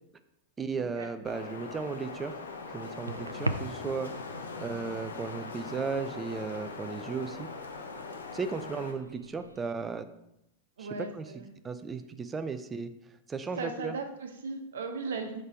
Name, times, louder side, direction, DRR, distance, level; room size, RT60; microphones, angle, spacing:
voice 1, 0.6-2.4 2.7-4.1 4.6-7.5 8.3-10.1 10.8-10.9 11.1-11.3 11.6-12.9 13.3-13.9, right 5 dB, 15° right, 9 dB, 0.5 m, -35 dB
Wind, 1.3-8.9, left 4 dB, 70° left, 0.9 m, -41 dB
sound 1, 1.5-9.7, right 2 dB, 85° right, 0.4 m, -42 dB
voice 2, 10.8-11.5 13.6-15.4, right 4 dB, 65° right, 5 dB, 1.1 m, -37 dB
6.6 x 5.3 x 4.5 m, 0.83 s
figure-of-eight pair, 90°, 0 cm